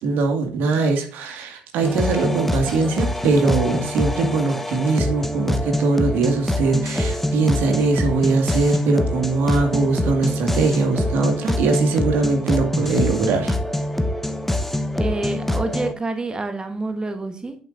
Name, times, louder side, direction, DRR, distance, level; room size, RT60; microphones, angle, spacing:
voice 1, 0.0-13.5, right 3 dB, 70° right, 4 dB, 2.0 m, -21 dB
sound 1, 1.8-15.9, left 1 dB, 5° left, 1.0 m, -24 dB
voice 2, 15.0-17.6, right 2 dB, 25° right, 8 dB, 1.2 m, -27 dB
8.6 x 7.2 x 2.6 m, 0.43 s
hypercardioid pair, 60°, 3 cm